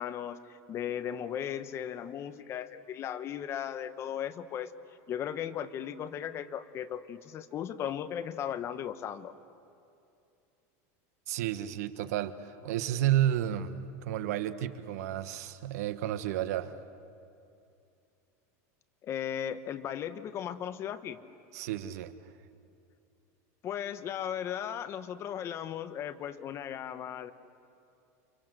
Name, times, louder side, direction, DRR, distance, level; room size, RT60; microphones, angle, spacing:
voice 1, 0.0-4.7 5.1-9.3 19.0-21.2 23.6-27.3, left 9 dB, 30° left, 11 dB, 1.1 m, -36 dB
voice 2, 11.3-16.8 21.5-22.1, right 12 dB, 80° right, 11 dB, 1.4 m, -31 dB
29.0 x 26.5 x 7.8 m, 2.6 s
supercardioid pair, 150°, 8 cm